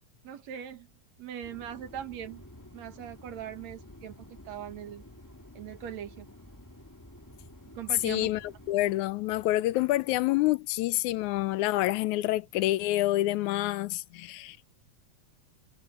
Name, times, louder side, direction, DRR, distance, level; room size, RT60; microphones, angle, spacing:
voice 1, 0.2-0.9 1.2-2.4 2.7-5.0 5.5-6.3 7.7-8.3, right 10 dB, 70° right, 2.7 m, -41 dB
sound 1, 1.4-8.7, left 1 dB, 10° left, 1.2 m, -51 dB
voice 2, 8.0-8.4 8.7-14.7, left 16 dB, 85° left, 2.0 m, -27 dB
omnidirectional pair, 3.4 m